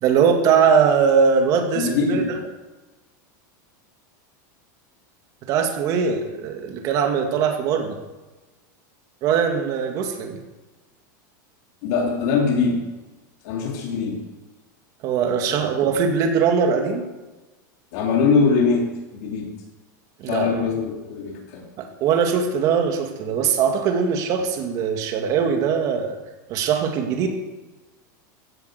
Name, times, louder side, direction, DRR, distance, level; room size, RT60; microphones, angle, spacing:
voice 1, 0.0-2.4 5.5-8.0 9.2-10.4 15.0-17.0 20.2-20.7 21.8-26.2 26.5-27.3, right 6 dB, 35° right, 4 dB, 2.2 m, -21 dB
voice 2, 1.8-2.3 11.8-12.8 13.4-14.2 15.8-16.0 17.9-19.5 20.3-21.6, left 5 dB, 55° left, 0 dB, 3.0 m, -22 dB
15.0 x 9.8 x 8.0 m, 1.1 s
supercardioid pair, 165°, 10 cm